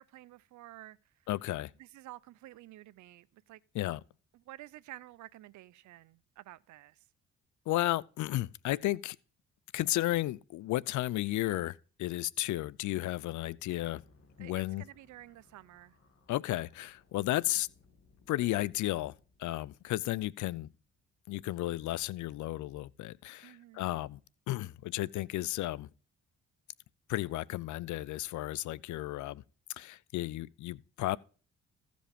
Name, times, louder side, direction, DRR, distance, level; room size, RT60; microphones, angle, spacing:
voice 1, 0.0-1.1 1.8-3.6 4.3-7.0 14.4-16.0 23.4-23.9, right 16 dB, 75° right, 0.5 m, -51 dB
voice 2, 1.3-1.7 3.7-4.0 7.7-9.2 9.7-14.0 14.4-14.8 16.3-17.7 18.3-19.1 19.4-20.7 21.3-24.2 24.5-25.9 27.1-29.4 29.8-31.2, left 16 dB, 75° left, 0.5 m, -33 dB
sound 1, 13.6-21.6, left 3 dB, 45° left, 2.2 m, -66 dB
14.5 x 5.1 x 5.1 m
cardioid pair, 90°, 30 cm